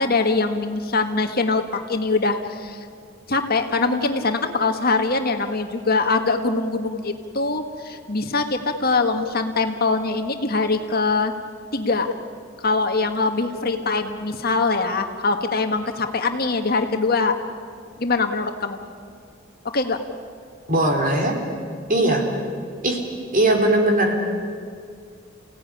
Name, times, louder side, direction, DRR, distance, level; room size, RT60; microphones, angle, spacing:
voice 1, 0.0-2.8 3.3-11.3 11.7-12.1 12.6-17.4 18.0-18.8 19.7-20.0, left 3 dB, 50° left, 5 dB, 1.7 m, -23 dB
voice 2, 20.7-21.3 21.9-22.2 22.8-23.0 23.3-24.2, right 1 dB, 45° right, 2 dB, 4.0 m, -19 dB
29.5 x 17.5 x 10.0 m, 2.2 s
head